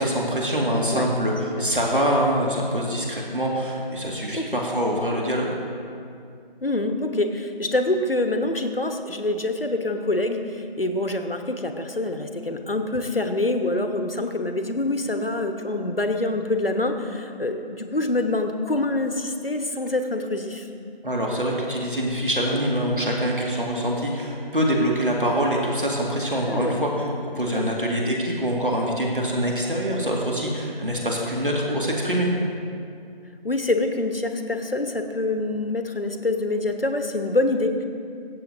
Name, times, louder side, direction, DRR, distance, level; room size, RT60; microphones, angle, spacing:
voice 1, 0.0-5.5 21.0-32.3, equal, 60° right, -2 dB, 1.9 m, -24 dB
voice 2, 6.6-20.7 26.5-26.8 27.5-27.8 33.4-37.8, left 2 dB, 70° left, 6 dB, 1.2 m, -25 dB
22.5 x 8.2 x 2.7 m, 2.4 s
figure-of-eight pair, 180°, 30 cm